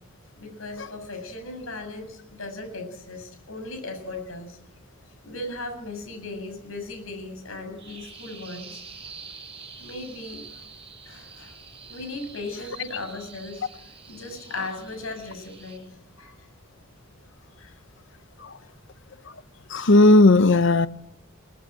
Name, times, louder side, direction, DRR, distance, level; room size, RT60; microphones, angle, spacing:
voice 1, 0.4-4.6 5.2-8.8 9.8-10.4 11.1-11.5 11.9-13.7 14.1-15.8 16.2-16.4 17.6-17.7 18.3-18.7, left 2 dB, 75° left, 7.3 m, -37 dB
Bird vocalization bird call bird song, 7.8-15.8, right 5 dB, 30° right, 6.0 m, -46 dB
voice 2, 19.7-20.9, left 2 dB, 60° left, 0.8 m, -15 dB
23.0 x 18.5 x 9.0 m
head